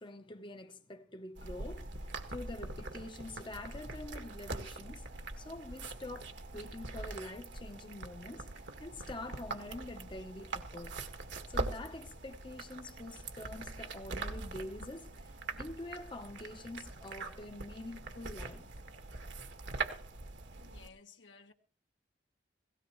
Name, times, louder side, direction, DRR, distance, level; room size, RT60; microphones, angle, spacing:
voice 1, 0.0-5.1 5.4-11.0 11.5-18.7, left 2 dB, 25° left, 0.9 m, -46 dB
sound 1, 1.4-20.9, right 3 dB, 75° right, 1.9 m, -43 dB
voice 2, 20.5-21.5, left 5 dB, 75° left, 1.6 m, -57 dB
17.5 x 17.5 x 3.1 m
head